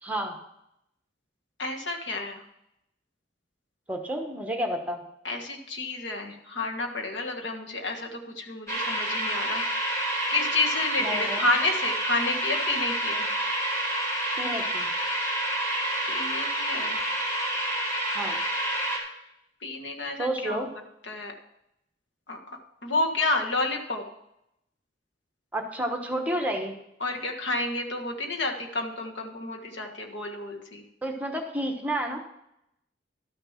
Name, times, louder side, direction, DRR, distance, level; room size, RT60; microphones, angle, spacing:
voice 1, 0.0-0.4 3.9-5.0 11.0-11.5 14.4-14.9 18.1-18.4 20.2-20.7 25.5-26.8 31.0-32.2, right 1 dB, 10° right, 3 dB, 1.1 m, -30 dB
voice 2, 1.6-2.4 5.2-9.7 10.3-13.3 16.1-17.0 19.6-20.7 21.0-21.3 22.3-24.0 27.0-30.8, left 2 dB, 75° left, 2 dB, 1.6 m, -30 dB
sound 1, 8.7-19.0, right 1 dB, 15° left, 3.1 m, -28 dB
12.0 x 6.7 x 5.7 m, 0.80 s
head